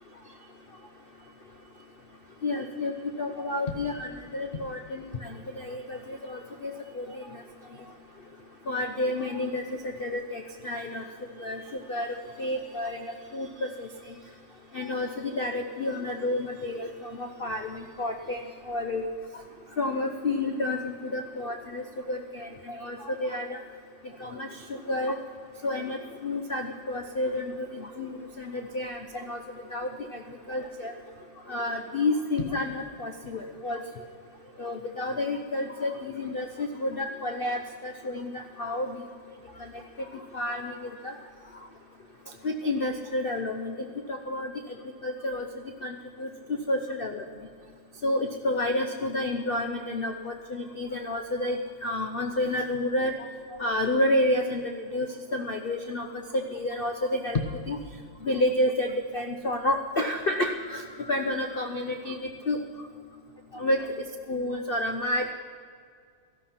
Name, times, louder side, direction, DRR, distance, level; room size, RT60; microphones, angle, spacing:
voice 1, 2.4-2.9 3.2-7.4 8.7-11.0 11.4-13.1 13.3-13.9 14.7-18.4 18.7-19.0 19.8-23.6 24.2-25.1 25.6-29.4 29.7-30.2 30.5-30.9 31.5-33.8 34.6-39.0 40.3-41.1 42.4-43.7 44.1-44.5 45.0-45.4 45.8-47.2 48.0-53.1 53.6-56.1 56.3-57.8 58.2-62.6 63.5-65.3, left 1 dB, 65° left, 4 dB, 0.5 m, -30 dB
17.5 x 13.5 x 5.8 m, 2.1 s
omnidirectional pair, 2.3 m